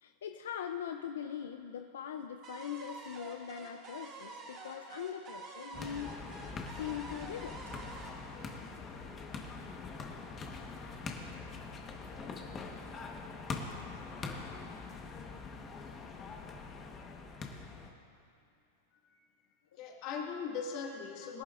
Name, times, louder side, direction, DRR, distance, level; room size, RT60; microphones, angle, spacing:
voice 1, 0.0-6.2 6.7-7.6 21.2-21.3, left 9 dB, 85° left, 6 dB, 0.5 m, -41 dB
sound 1, 2.4-9.4, right 3 dB, 35° right, 2.1 m, -49 dB
sound 2, 5.7-17.9, left 4 dB, 25° left, 1.2 m, -43 dB
voice 2, 19.8-21.4, left 6 dB, 50° left, 0 dB, 2.0 m, -40 dB
23.0 x 11.0 x 2.5 m, 2.5 s
hypercardioid pair, 130°, 0 cm